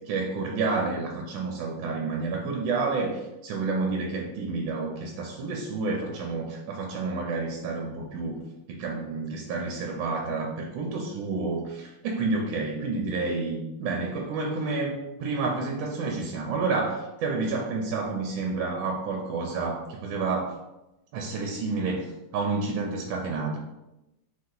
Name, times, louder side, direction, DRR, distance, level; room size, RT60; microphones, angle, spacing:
voice 1, 0.1-14.9 15.2-20.6 21.1-23.6, right 3 dB, 75° right, 1 dB, 1.3 m, -29 dB
4.0 x 2.7 x 3.8 m, 0.95 s
omnidirectional pair, 2.2 m